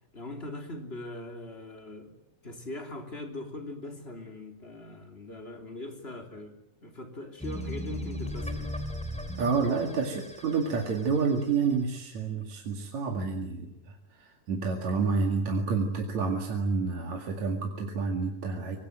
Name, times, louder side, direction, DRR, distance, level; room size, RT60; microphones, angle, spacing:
voice 1, 0.1-2.1 2.4-8.7, left 1 dB, 20° left, 4 dB, 3.1 m, -41 dB
sound 1, 7.4-11.8, left 1 dB, ahead, 2.2 m, -37 dB
voice 2, 9.4-18.8, right 4 dB, 60° right, 2 dB, 3.3 m, -29 dB
24.5 x 21.0 x 9.2 m, 0.80 s
omnidirectional pair, 3.8 m